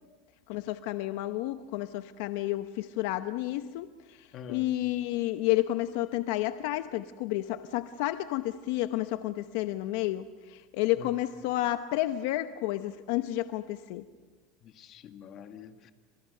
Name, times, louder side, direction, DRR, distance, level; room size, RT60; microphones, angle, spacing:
voice 1, 0.5-14.0, left 15 dB, 70° left, 0.8 m, -31 dB
voice 2, 4.3-4.7 11.0-11.1 14.6-15.9, left 8 dB, 35° left, 1.7 m, -46 dB
29.0 x 26.0 x 6.6 m
supercardioid pair, 155°, 0 cm